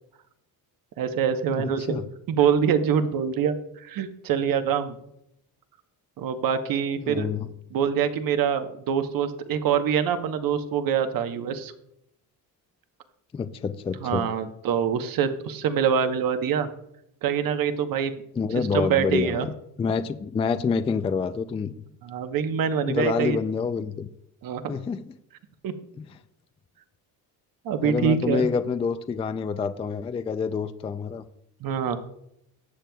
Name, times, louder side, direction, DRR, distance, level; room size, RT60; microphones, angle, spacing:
voice 1, 1.0-2.0 2.3-3.5 3.8-5.0 6.2-7.3 7.7-11.7 14.0-16.7 17.2-18.2 18.7-19.5 22.0-23.4 24.4-24.8 25.6-25.7 27.6-28.5 31.6-32.0, right 7 dB, 60° right, 8 dB, 1.0 m, -25 dB
voice 2, 1.5-2.1 7.0-7.5 13.3-14.3 18.3-21.7 22.9-24.1 24.7-25.2 26.0-26.2 27.8-31.2, left 5 dB, 15° left, 10 dB, 0.3 m, -27 dB
19.0 x 7.6 x 2.3 m, 0.79 s
cardioid pair, 125°, 38 cm